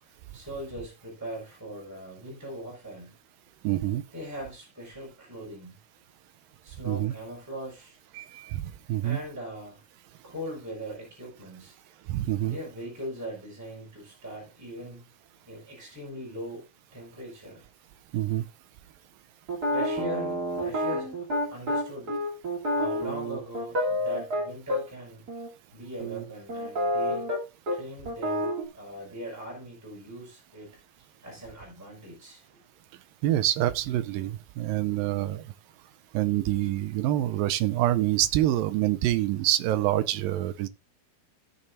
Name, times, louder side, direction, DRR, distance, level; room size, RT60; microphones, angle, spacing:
voice 1, 0.0-3.1 4.1-5.7 6.6-8.0 9.0-9.8 10.2-11.7 12.5-15.1 15.5-16.6 16.9-17.6 19.7-22.1 22.7-25.2 25.7-27.3 27.7-28.5 28.7-32.4, equal, 5° right, 4.6 m, -40 dB
voice 2, 3.6-4.0 6.9-7.1 8.1-9.2 12.1-12.6 18.1-18.5 33.2-35.5 36.1-40.7, right 14 dB, 80° right, 2.1 m, -26 dB
sound 1, 19.5-24.8 25.3-25.5 26.0-27.4 27.7-27.8 28.1-28.6, equal, 25° right, 3.1 m, -28 dB
17.0 x 6.9 x 2.6 m
omnidirectional pair, 4.4 m